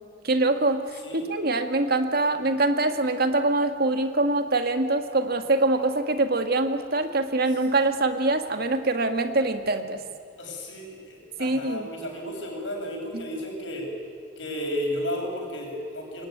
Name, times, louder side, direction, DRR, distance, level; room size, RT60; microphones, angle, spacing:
voice 1, 0.2-1.0 1.3-10.0 11.4-11.9 13.1-13.2, right 2 dB, 55° right, 7 dB, 1.9 m, -24 dB
voice 2, 10.4-14.0 14.4-16.3, equal, 85° left, 0 dB, 7.8 m, -33 dB
26.5 x 22.0 x 9.5 m, 2.4 s
head